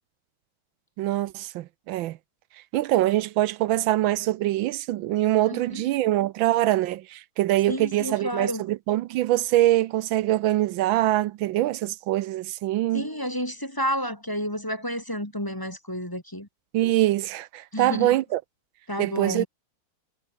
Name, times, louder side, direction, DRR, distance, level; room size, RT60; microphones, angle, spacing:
voice 1, 1.0-2.2 2.7-13.1 16.7-18.4 19.0-19.5, right 15 dB, 80° right, 1.4 m, -24 dB
voice 2, 5.5-5.8 7.7-8.6 12.9-16.5 17.7-18.2 18.9-19.5, equal, 10° left, 2.0 m, -30 dB
omnidirectional pair, 2.2 m